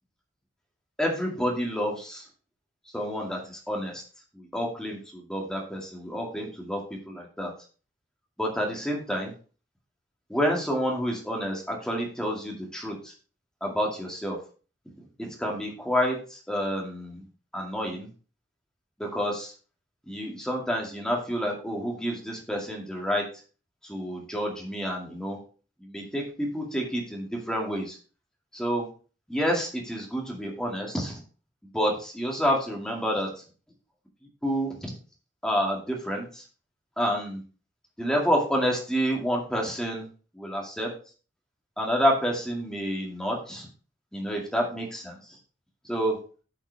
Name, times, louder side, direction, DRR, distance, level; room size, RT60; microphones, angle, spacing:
voice 1, 1.0-2.2 2.9-4.0 4.3-7.5 8.4-9.3 10.3-13.1 13.6-14.4 15.2-17.2 17.5-18.1 19.0-19.5 20.1-23.3 23.8-25.4 25.8-28.0 28.5-28.9 29.3-31.2 31.7-33.3 34.4-34.9 35.4-36.4 37.0-37.4 38.0-40.1 40.3-40.9 41.8-43.7 44.1-45.2 45.8-46.2, equal, 5° left, -1 dB, 2.2 m, -29 dB
11.0 x 5.9 x 3.4 m, 0.37 s
head